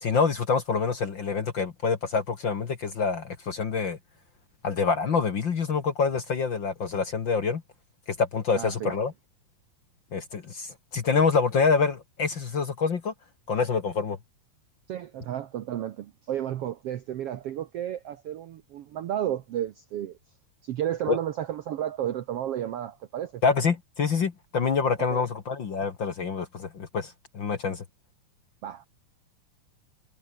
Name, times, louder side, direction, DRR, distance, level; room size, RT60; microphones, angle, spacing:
voice 1, 0.0-4.0 4.6-7.6 8.1-9.1 10.1-13.1 13.5-14.2 21.1-21.2 23.4-27.8, left 5 dB, 45° left, 1.8 m, -26 dB
voice 2, 8.6-8.9 14.9-20.2 20.6-23.4 25.1-25.3 28.6-28.9, right 11 dB, 70° right, 1.5 m, -32 dB
omnidirectional pair, 3.8 m